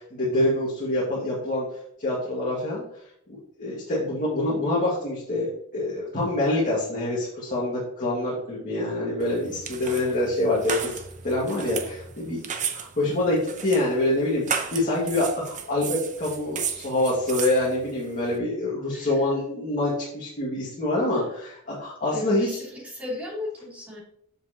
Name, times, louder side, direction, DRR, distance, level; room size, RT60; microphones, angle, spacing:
voice 1, 0.0-1.6 2.0-2.8 3.6-10.9 11.2-22.5, left 1 dB, 35° left, -6 dB, 2.0 m, -26 dB
sound 1, 9.2-18.4, right 6 dB, 35° right, 0.7 m, -34 dB
voice 2, 18.9-19.2 22.1-24.0, left 2 dB, 5° right, -6 dB, 3.0 m, -35 dB
7.6 x 7.2 x 2.9 m, 0.72 s
head